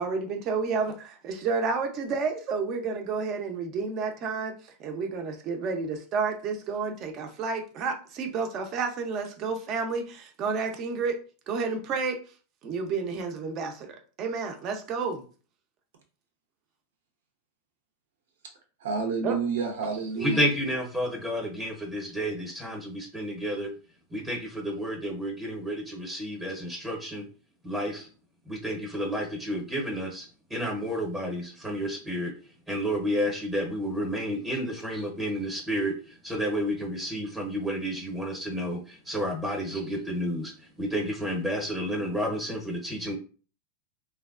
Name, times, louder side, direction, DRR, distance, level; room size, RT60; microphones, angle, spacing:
voice 1, 0.0-11.2 11.5-12.2 12.6-13.9 14.2-15.2 19.2-19.4, right 4 dB, 40° right, 0.6 m, -30 dB
voice 2, 18.8-20.4, right 5 dB, 80° right, 0.8 m, -29 dB
voice 3, 20.2-23.7 24.1-27.2 27.6-28.1 28.4-32.3 32.7-43.1, equal, 15° right, 0.9 m, -31 dB
3.2 x 2.2 x 2.4 m
supercardioid pair, 125°, 0 cm